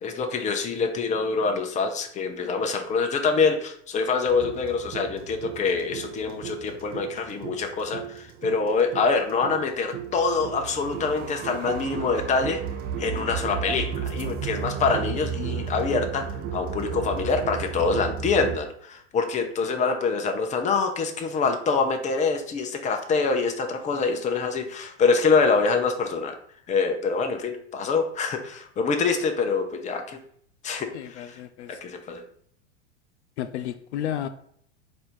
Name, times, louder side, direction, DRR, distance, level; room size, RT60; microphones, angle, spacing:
voice 1, 0.0-12.6 13.0-16.3 16.5-26.3 26.7-30.2 30.6-31.4 31.8-32.2, left 4 dB, 20° left, 0.6 m, -25 dB
sound 1, 4.3-18.6, right 8 dB, 25° right, 0.4 m, -34 dB
voice 2, 30.9-31.8 33.4-34.3, left 10 dB, 70° left, 0.5 m, -32 dB
4.3 x 2.6 x 4.3 m
hypercardioid pair, 95°, 35 cm